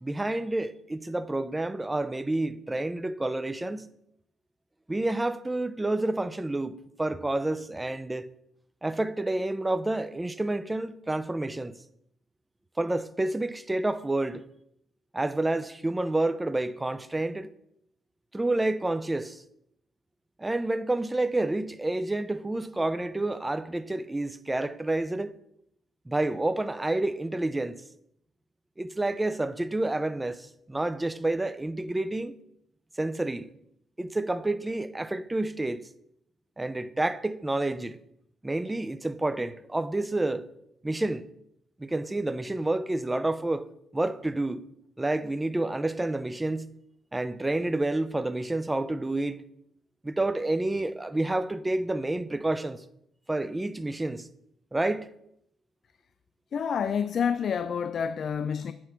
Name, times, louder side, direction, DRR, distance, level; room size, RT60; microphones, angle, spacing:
voice 1, 0.0-3.9 4.9-8.3 8.8-11.8 12.8-14.5 15.1-17.5 18.3-19.4 20.4-25.4 26.1-27.8 28.8-32.4 33.0-33.5 34.0-35.9 36.6-38.0 38.4-40.5 40.8-41.2 41.8-43.6 43.9-44.7 45.0-46.7 47.1-49.4 50.0-52.8 53.3-54.3 54.7-55.1, right 2 dB, 15° right, 0.5 m, -29 dB
voice 2, 56.5-58.7, left 7 dB, 55° left, 0.3 m, -28 dB
8.0 x 4.6 x 5.8 m
cardioid pair, 90°, 0 cm